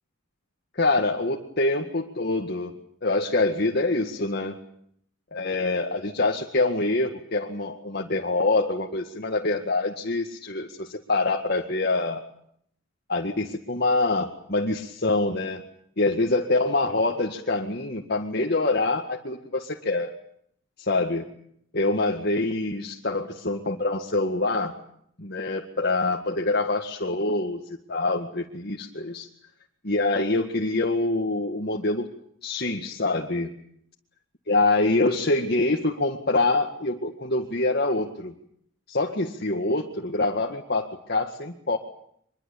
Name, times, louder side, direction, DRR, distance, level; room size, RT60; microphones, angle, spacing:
voice 1, 0.7-2.7 3.0-4.6 5.3-12.2 13.1-15.6 16.0-20.1 20.8-21.2 21.7-24.7 25.2-27.6 27.9-29.3 29.8-32.1 32.4-33.5 34.5-38.4 38.9-41.8, left 2 dB, 50° left, 1 dB, 2.0 m, -25 dB
24.5 x 22.5 x 8.7 m, 0.69 s
head